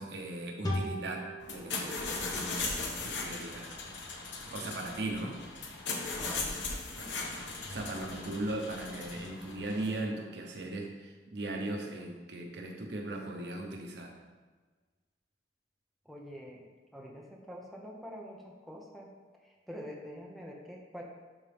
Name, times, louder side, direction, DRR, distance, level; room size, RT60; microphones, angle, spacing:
voice 1, 0.0-3.8 4.5-5.4 7.0-7.3 7.7-14.1, right 2 dB, 70° right, 1 dB, 1.0 m, -38 dB
sound 1, 0.6-4.0, equal, 20° left, 1.1 m, -40 dB
sound 2, 1.4-10.0, left 3 dB, 90° left, 1.0 m, -38 dB
voice 2, 6.1-6.7 16.1-16.6 16.9-19.1 19.4-21.0, equal, ahead, -1 dB, 0.8 m, -46 dB
11.0 x 3.8 x 3.5 m, 1.3 s
head